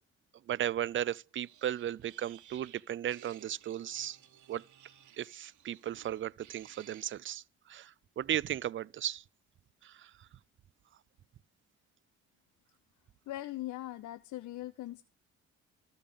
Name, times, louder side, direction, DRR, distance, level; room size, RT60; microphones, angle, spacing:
voice 1, 0.5-4.2 4.5-4.6 5.2-9.2 9.8-10.1, right 11 dB, 40° right, 0.4 m, -36 dB
sound 1, 1.4-7.0, right 11 dB, 75° right, 1.5 m, -57 dB
voice 2, 13.3-15.0, left 15 dB, 75° left, 0.7 m, -40 dB
13.5 x 5.2 x 6.8 m
cardioid pair, 90°, 30 cm